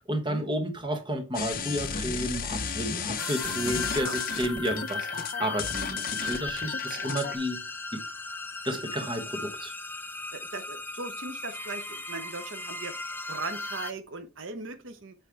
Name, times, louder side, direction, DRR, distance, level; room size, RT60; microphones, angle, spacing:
voice 1, 0.0-7.6 7.9-8.0 8.6-9.7, equal, 25° right, 1.3 m, -32 dB
sound 1, 1.3-7.4, left 6 dB, 45° left, 0.7 m, -34 dB
sound 2, 3.2-13.9, left 3 dB, 10° left, 0.4 m, -37 dB
voice 2, 3.2-4.2 5.4-5.6 5.9-6.0 10.3-15.1, right 3 dB, 70° right, 0.9 m, -40 dB
8.7 x 3.4 x 4.6 m
head